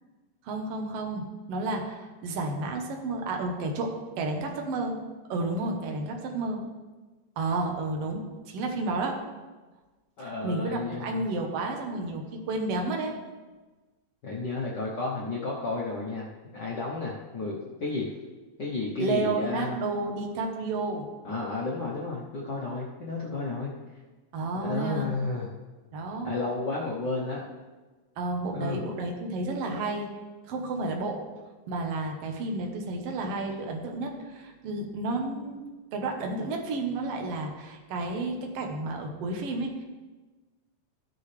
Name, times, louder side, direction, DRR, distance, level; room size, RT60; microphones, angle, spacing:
voice 1, 0.4-5.0 5.3-6.6 7.4-9.2 10.2-13.1 19.0-21.1 24.3-25.1 25.9-26.3 28.2-30.1 30.5-31.2 31.7-35.7 35.9-39.8, right 2 dB, 60° right, 2 dB, 2.0 m, -31 dB
voice 2, 10.2-11.3 14.2-18.1 18.6-19.8 21.2-23.7 24.5-25.5 26.2-27.4 28.5-28.8, left 3 dB, 85° left, -4 dB, 0.9 m, -32 dB
13.5 x 7.1 x 3.3 m, 1.3 s
omnidirectional pair, 3.5 m